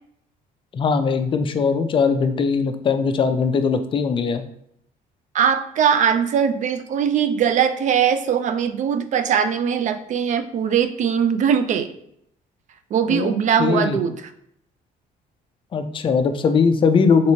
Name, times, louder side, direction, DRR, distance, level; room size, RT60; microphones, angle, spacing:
voice 1, 0.7-4.4 13.1-13.3 13.6-14.0 15.7-17.3, left 5 dB, 30° left, 8 dB, 0.4 m, -20 dB
voice 2, 5.3-11.9 12.9-14.3, right 8 dB, 45° right, 10 dB, 0.4 m, -20 dB
3.2 x 3.0 x 2.7 m, 0.73 s
cardioid pair, 110°, 17 cm